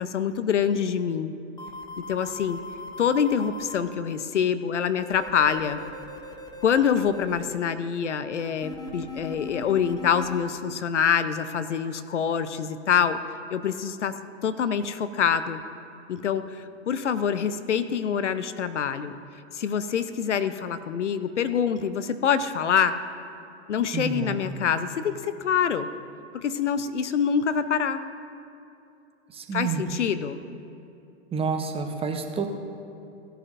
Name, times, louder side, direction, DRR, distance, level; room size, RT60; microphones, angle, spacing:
voice 1, 0.0-1.3 2.0-2.6 3.0-5.8 6.6-13.2 13.5-14.1 14.4-15.6 16.1-19.1 19.5-23.0 23.7-25.9 26.3-28.0 29.5-30.4, left 7 dB, 85° left, 12 dB, 0.7 m, -25 dB
sound 1, 1.6-3.8 5.0-7.4 8.6-10.4, left 2 dB, 10° left, 1.1 m, -39 dB
voice 2, 23.9-24.4 29.3-29.8 31.3-32.5, right 5 dB, 15° right, 4 dB, 0.9 m, -29 dB
16.5 x 10.0 x 2.6 m, 2.8 s
hypercardioid pair, 105°, 35 cm